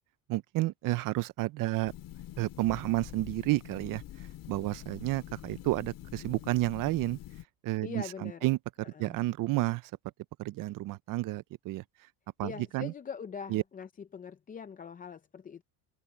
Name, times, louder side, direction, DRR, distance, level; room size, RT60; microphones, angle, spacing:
voice 1, 0.3-1.9 2.4-4.0 4.5-7.2 7.6-8.6 9.0-9.8 10.4-11.8 12.4-12.9 13.5-13.6, right 18 dB, 50° right, 0.7 m, -31 dB
sound 1, 1.9-7.4, left 13 dB, 50° left, 3.0 m, -46 dB
voice 2, 7.8-8.5 8.8-9.2 12.4-15.6, left 6 dB, 20° left, 0.6 m, -43 dB
open air
cardioid pair, 135°, 41 cm